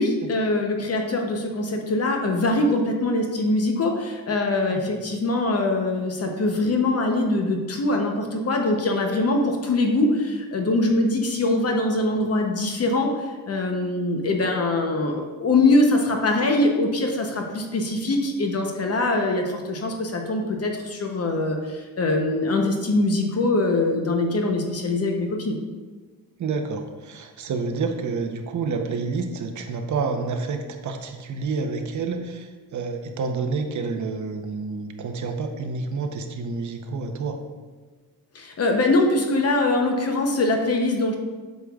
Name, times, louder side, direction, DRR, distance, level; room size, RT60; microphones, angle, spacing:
voice 1, 0.0-25.6 38.3-41.1, left 2 dB, 45° left, 3 dB, 0.8 m, -23 dB
voice 2, 26.4-37.4, right 4 dB, 55° right, 5 dB, 0.8 m, -29 dB
8.1 x 6.5 x 2.4 m, 1.3 s
cardioid pair, 135°, 36 cm